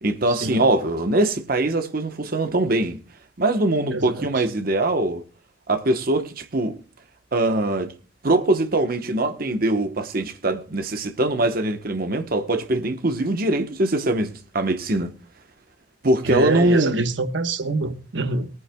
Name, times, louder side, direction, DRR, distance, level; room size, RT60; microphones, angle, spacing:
voice 1, 0.0-3.0 3.4-5.3 5.7-6.8 7.3-7.9 8.2-15.1 16.0-17.0, right 2 dB, 55° right, 1.1 m, -22 dB
voice 2, 3.9-4.3 16.2-18.5, right 3 dB, 90° right, 1.2 m, -25 dB
21.5 x 9.6 x 2.3 m
head